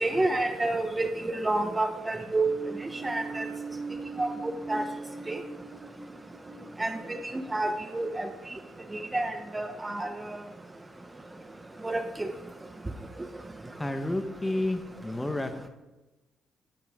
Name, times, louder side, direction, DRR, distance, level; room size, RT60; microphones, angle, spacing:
voice 1, 0.0-2.5 3.0-3.4 4.2-4.3 4.7-4.8 5.3-5.4 6.8-7.2 7.5-8.3 9.1-10.1 11.8-12.3, right 2 dB, 15° right, 7 dB, 1.0 m, -28 dB
sound 1, 2.4-8.8, right 3 dB, 50° right, 3.3 m, -41 dB
voice 2, 13.8-15.5, left 1 dB, 10° left, 7 dB, 1.2 m, -30 dB
15.0 x 11.0 x 3.7 m, 1.1 s
cardioid pair, 90°, 0 cm